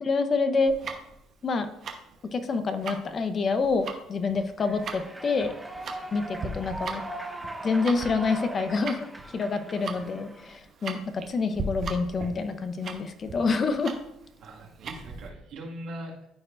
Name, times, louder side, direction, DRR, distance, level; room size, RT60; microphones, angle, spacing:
voice 1, 0.0-0.7 1.4-1.7 2.3-5.5 6.1-7.0 7.6-9.1 9.3-13.9, left 4 dB, 45° left, 9 dB, 0.9 m, -27 dB
Tick-tock, 0.7-15.3, right 4 dB, 55° right, 1.0 m, -39 dB
Human voice / Clapping / Cheering, 4.6-10.6, right 1 dB, 10° right, 1.0 m, -39 dB
voice 2, 14.4-16.3, right 1 dB, 70° right, -2 dB, 1.9 m, -41 dB
13.0 x 4.5 x 2.5 m, 0.84 s
hypercardioid pair, 60°, 0 cm